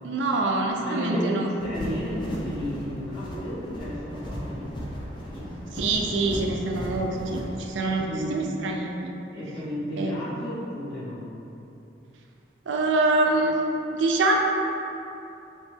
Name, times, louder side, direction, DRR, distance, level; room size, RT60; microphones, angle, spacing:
voice 1, 0.0-1.5 5.8-9.1 10.0-10.2 12.7-13.6 13.9-14.4, right 2 dB, 85° right, 1 dB, 0.4 m, -25 dB
voice 2, 0.8-4.7 5.3-5.8 7.9-8.4 9.3-11.3, equal, 80° left, -11 dB, 1.4 m, -33 dB
sound 1, 1.6-7.7, equal, 25° left, 0.4 m, -35 dB
3.1 x 2.9 x 3.2 m, 2.9 s
head